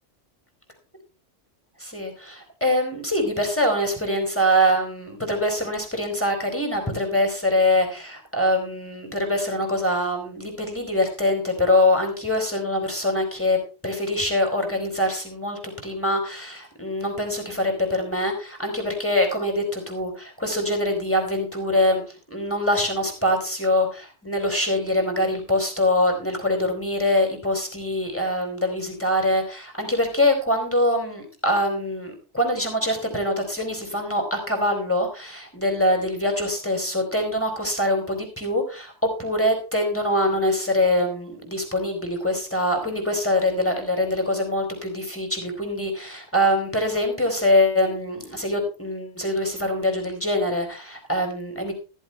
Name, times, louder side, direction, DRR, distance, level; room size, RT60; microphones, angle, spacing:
voice 1, 1.8-22.0 22.3-51.7, left 1 dB, 10° left, 2 dB, 4.2 m, -24 dB
14.5 x 14.5 x 3.3 m, 0.33 s
omnidirectional pair, 1.3 m